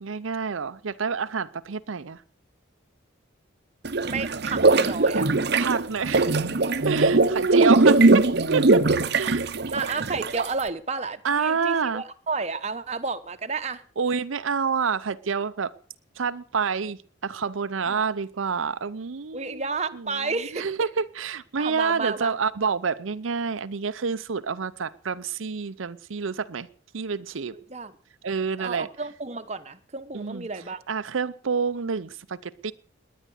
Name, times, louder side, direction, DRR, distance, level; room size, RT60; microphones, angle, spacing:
voice 1, 0.0-2.2 5.5-6.4 6.8-8.8 9.1-9.5 11.2-12.0 14.0-15.7 16.2-19.6 19.9-20.0 20.5-26.7 26.9-27.6 28.2-28.9 30.1-30.5 30.9-32.7, right 5 dB, 85° right, 0.7 m, -28 dB
sound 1, 3.9-10.6, right 3 dB, 55° right, 0.9 m, -20 dB
voice 2, 4.0-5.3 9.7-13.8 17.9-18.0 19.3-20.7 21.6-22.3 27.5-27.9 28.6-30.8, right 4 dB, 35° right, 1.1 m, -31 dB
19.0 x 10.5 x 6.4 m
head